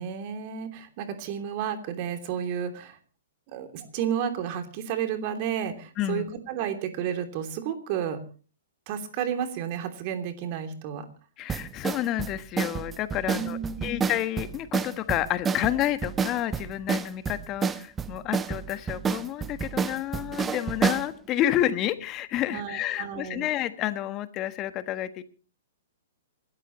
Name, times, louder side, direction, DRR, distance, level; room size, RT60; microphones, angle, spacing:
voice 1, 0.0-3.0 3.5-8.2 8.9-11.1 13.3-14.1 22.5-23.5, right 8 dB, 40° right, 6 dB, 3.0 m, -32 dB
voice 2, 6.0-6.3 11.4-25.2, left 13 dB, 30° left, 11 dB, 1.4 m, -30 dB
sound 1, 11.5-21.1, right 6 dB, 15° right, 0.8 m, -29 dB
27.5 x 13.0 x 3.1 m, 0.38 s
figure-of-eight pair, 115°, 0 cm